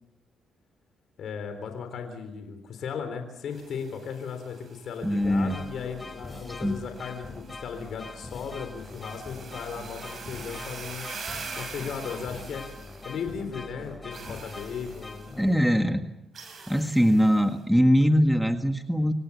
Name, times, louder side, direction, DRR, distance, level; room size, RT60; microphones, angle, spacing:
voice 1, 1.2-11.1 11.6-12.7 13.0-15.8, left 6 dB, 70° left, 7 dB, 3.7 m, -36 dB
sound 1, 3.5-13.5 14.1-15.5 16.3-17.6, right 5 dB, 50° right, 6.5 m, -45 dB
voice 2, 5.0-5.6 6.6-6.7 15.4-16.1 16.7-19.1, equal, ahead, 6 dB, 1.7 m, -22 dB
sound 2, 5.2-15.8, left 3 dB, 25° left, 5.1 m, -43 dB
27.0 x 16.5 x 8.4 m, 0.93 s
supercardioid pair, 70°, 0 cm